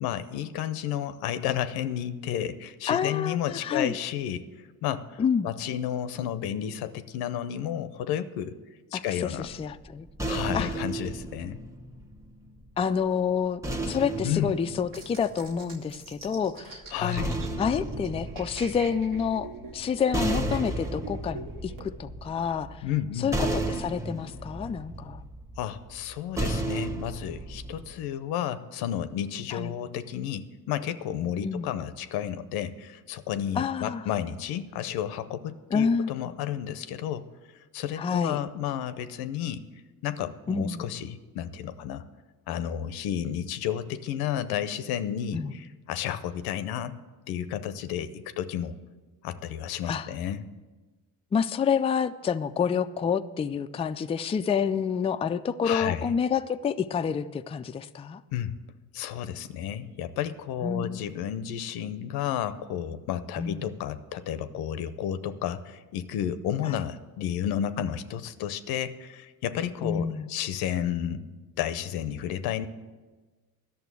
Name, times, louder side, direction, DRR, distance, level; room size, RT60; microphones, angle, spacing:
voice 1, 0.0-4.5 4.8-8.6 8.9-9.5 10.3-11.6 14.2-14.5 16.9-17.3 22.8-23.3 25.6-37.2 37.7-39.6 40.0-42.0 42.5-46.9 47.3-48.7 49.2-50.5 55.6-56.1 58.3-58.5 58.9-71.3 71.6-72.7, left 10 dB, 90° left, 13 dB, 0.7 m, -32 dB
voice 2, 2.9-3.9 5.2-5.5 8.9-10.1 10.5-10.7 12.8-13.6 13.9-22.8 23.2-25.2 29.5-29.7 31.4-31.7 33.6-34.0 35.7-36.1 38.0-38.4 40.5-40.8 45.3-45.5 49.9-50.1 51.3-58.2 60.6-61.0 63.4-63.6 66.7-66.8 69.8-70.3, left 6 dB, 15° left, 10 dB, 0.3 m, -28 dB
sound 1, 9.5-12.7 13.6-15.9 16.8-27.9, right 1 dB, 10° right, 1.0 m, -34 dB
sound 2, 14.9-21.9, right 4 dB, 65° right, 1.6 m, -44 dB
11.5 x 6.8 x 8.3 m, 1.3 s
cardioid pair, 105°, 36 cm